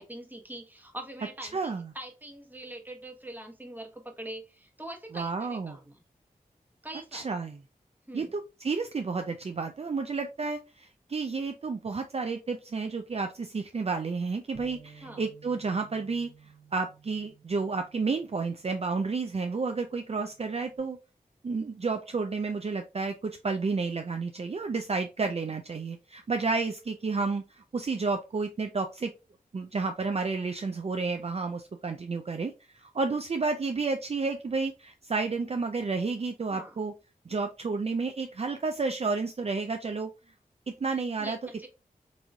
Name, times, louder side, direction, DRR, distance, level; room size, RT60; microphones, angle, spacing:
voice 1, 0.0-6.0 6.8-7.3 8.1-8.3 15.0-15.2 25.4-25.5 36.5-36.8 41.2-41.7, right 1 dB, 10° right, 1.0 m, -43 dB
voice 2, 1.5-1.9 5.1-5.8 7.1-7.6 8.1-16.3 16.7-21.0 21.4-29.1 29.5-36.9 37.3-40.1 40.8-41.4, right 4 dB, 40° right, 0.5 m, -31 dB
Bass guitar, 14.5-20.8, right 5 dB, 35° left, 1.8 m, -56 dB
4.0 x 2.9 x 2.3 m
cardioid pair, 40°, 15 cm